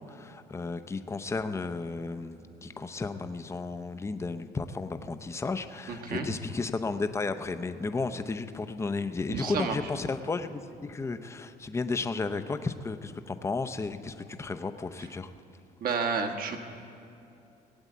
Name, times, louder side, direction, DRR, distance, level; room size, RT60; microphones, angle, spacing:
voice 1, 0.0-15.3, left 3 dB, 15° left, 9 dB, 0.6 m, -33 dB
voice 2, 5.9-6.3 9.3-9.8 15.8-16.6, right 5 dB, 60° right, 4 dB, 1.4 m, -30 dB
17.5 x 8.0 x 8.4 m, 2.6 s
cardioid pair, 110°, 17 cm